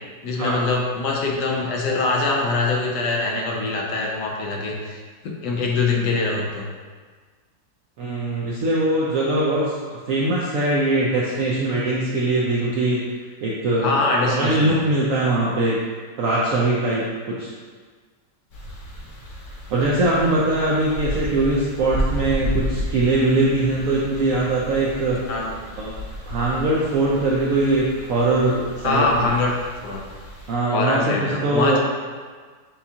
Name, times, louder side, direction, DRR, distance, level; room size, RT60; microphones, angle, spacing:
voice 1, 0.2-5.0 5.2-6.7 13.8-14.8 25.3-25.5 28.8-29.5 29.8-30.0 30.7-31.8, left 3 dB, 75° left, -1 dB, 1.2 m, -23 dB
voice 2, 8.0-13.0 13.4-13.9 14.3-15.8 16.2-17.5 19.7-25.2 25.8-25.9 26.3-29.3 30.5-31.8, right 2 dB, 75° right, -5 dB, 0.7 m, -21 dB
sound 1, 18.5-30.5, equal, 55° left, 0.9 m, -32 dB
6.9 x 2.4 x 2.7 m, 1.5 s
omnidirectional pair, 1.9 m